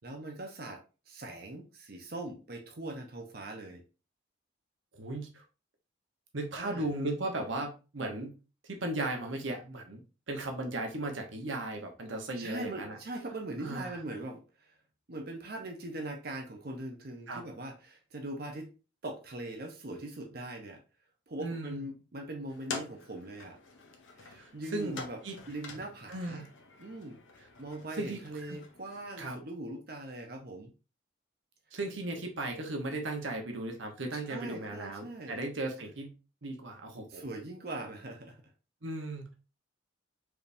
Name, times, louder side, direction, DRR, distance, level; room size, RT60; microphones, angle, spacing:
voice 1, 0.0-3.8 6.5-6.9 12.4-14.7 15.1-18.7 19.0-20.8 21.3-23.6 24.2-25.2 25.5-26.5 26.8-27.2 27.6-30.7 34.1-35.4 37.1-38.4, right 1 dB, 50° right, 3 dB, 0.7 m, -41 dB
voice 2, 4.9-5.3 6.3-8.3 8.6-10.0 10.3-13.0 13.6-14.0 17.3-17.4 21.4-21.8 24.3-25.4 26.1-26.5 28.0-28.2 28.5-28.6 29.2-29.4 31.7-36.1 36.4-37.2 38.8-39.3, right 2 dB, 75° right, 3 dB, 1.0 m, -36 dB
sound 1, 22.5-29.2, left 4 dB, 80° left, 0.8 m, -47 dB
4.8 x 3.4 x 2.6 m, 0.32 s
head